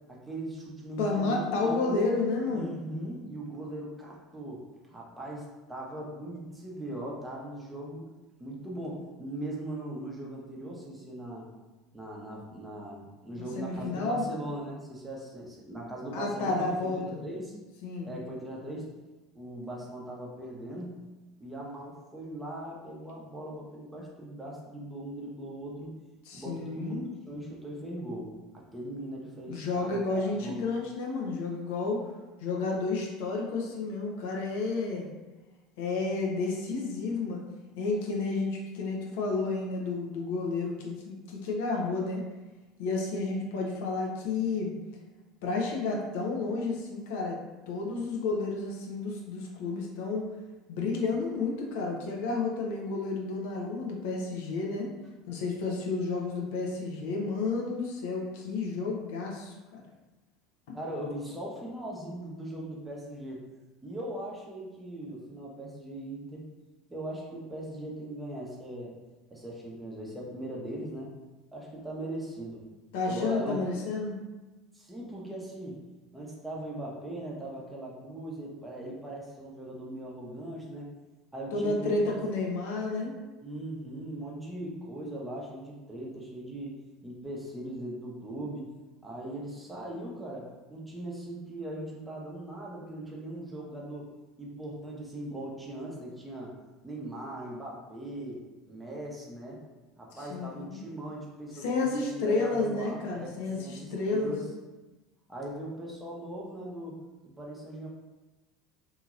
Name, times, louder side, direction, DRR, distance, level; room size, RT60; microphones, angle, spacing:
voice 1, 0.1-2.1 2.5-8.1 8.4-11.5 11.9-16.7 16.9-17.5 18.0-18.9 19.3-21.0 21.4-25.9 26.3-30.6 60.7-63.4 63.8-66.4 66.9-68.9 69.3-71.1 71.5-72.7 73.1-73.7 74.7-75.8 76.1-80.9 81.3-82.2 83.4-86.8 87.0-88.7 89.0-94.1 94.4-96.5 96.8-99.6 100.0-104.5 105.3-107.0 107.4-107.9, right 1 dB, 10° right, -3 dB, 0.7 m, -39 dB
voice 2, 1.0-2.7 13.4-14.2 16.1-17.2 17.8-18.1 26.3-27.1 29.5-32.0 32.4-35.1 35.8-37.4 37.8-42.2 42.8-44.7 45.4-47.4 47.7-50.3 50.7-54.9 55.3-59.8 60.7-60.8 72.9-74.2 81.5-83.1 100.1-100.8 101.5-104.3, left 3 dB, 60° left, -1 dB, 0.5 m, -31 dB
2.8 x 2.7 x 2.4 m, 1.1 s
figure-of-eight pair, 70°, 0 cm